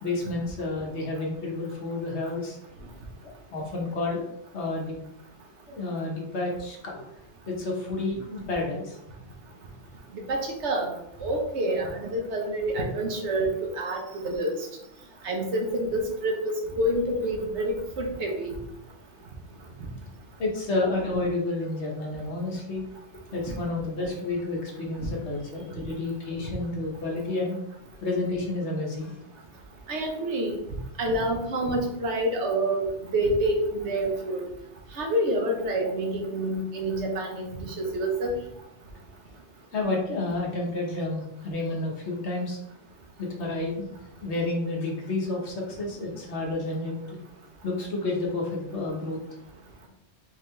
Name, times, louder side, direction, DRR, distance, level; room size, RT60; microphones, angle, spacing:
voice 1, 0.0-2.6 3.2-4.2 4.5-4.9 5.7-7.0 7.5-9.0 20.4-22.8 23.3-27.6 28.0-29.1 39.7-42.6 43.2-43.9 44.2-47.2 47.6-49.2, left 2 dB, 75° left, -1 dB, 1.4 m, -30 dB
voice 2, 10.3-10.9 11.2-14.6 15.2-18.5 29.9-30.6 31.0-34.5 34.9-38.4, right 1 dB, 80° right, 2 dB, 1.2 m, -27 dB
3.9 x 3.9 x 3.2 m, 0.82 s
omnidirectional pair, 1.1 m